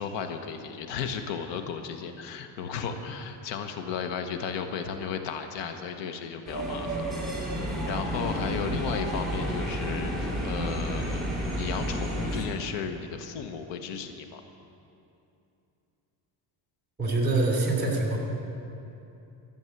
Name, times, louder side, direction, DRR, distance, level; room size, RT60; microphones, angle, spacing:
voice 1, 0.0-7.6 7.9-11.2 11.6-14.4, left 6 dB, 85° left, 7 dB, 1.2 m, -34 dB
sound 1, 6.5-12.5, equal, ahead, 3.7 m, -31 dB
voice 2, 17.0-18.2, right 2 dB, 25° right, 0 dB, 3.2 m, -25 dB
14.5 x 7.2 x 8.3 m, 2.8 s
cardioid pair, 115°, 42 cm